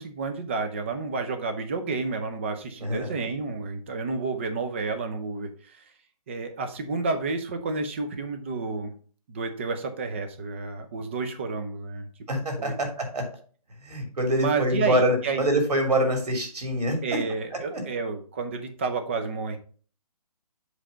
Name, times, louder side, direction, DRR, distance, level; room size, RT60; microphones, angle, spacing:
voice 1, 0.0-5.9 6.3-8.9 9.3-12.1 12.6-12.8 14.4-15.4 17.0-19.6, right 4 dB, 20° right, 7 dB, 0.6 m, -30 dB
voice 2, 2.8-3.1 12.3-13.3 13.8-17.0 17.7-17.8, right 1 dB, 85° right, 3 dB, 2.8 m, -25 dB
7.7 x 3.3 x 5.0 m, 0.41 s
hypercardioid pair, 170°, 20 cm